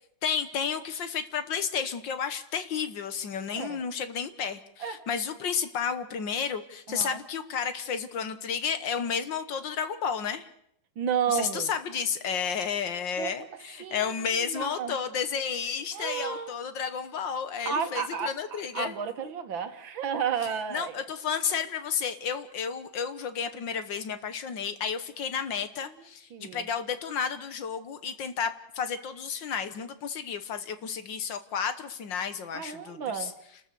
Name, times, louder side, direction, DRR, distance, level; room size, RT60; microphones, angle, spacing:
voice 1, 0.2-10.5 11.3-19.0 20.7-33.3, left 7 dB, 60° left, 11 dB, 1.7 m, -32 dB
voice 2, 6.9-7.2 11.0-11.7 13.2-15.0 15.9-16.5 17.7-21.0 26.3-26.6 32.5-33.3, right 7 dB, 65° right, 8 dB, 2.0 m, -32 dB
29.5 x 13.5 x 6.8 m, 0.74 s
omnidirectional pair, 2.3 m